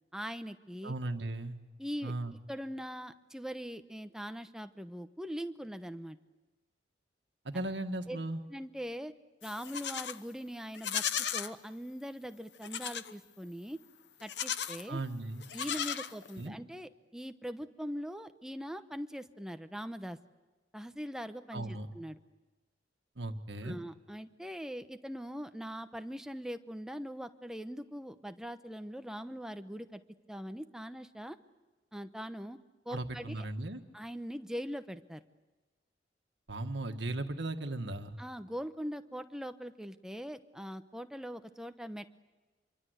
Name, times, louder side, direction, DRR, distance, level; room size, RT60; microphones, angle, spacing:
voice 1, 0.1-0.9 1.8-2.1 2.5-6.2 8.1-8.2 8.5-9.1 9.4-11.0 11.3-13.8 14.2-15.0 15.5-20.2 20.7-22.2 23.6-30.0 30.3-31.4 31.9-32.6 32.8-33.3 33.9-35.2 38.2-42.1, equal, 5° right, 8 dB, 0.9 m, -41 dB
voice 2, 0.8-1.6 2.0-2.3 7.4-8.4 14.9-15.5 16.4-16.5 21.5-21.9 23.1-23.8 32.9-33.8 36.5-38.2, right 2 dB, 75° right, 6 dB, 1.7 m, -37 dB
Livestock farm animals working animals, 9.4-10.2 10.7-11.5 12.6-13.1 14.2-14.9 15.4-16.5, left 9 dB, 70° left, 0.9 m, -36 dB
27.0 x 23.5 x 8.1 m, 1.2 s
head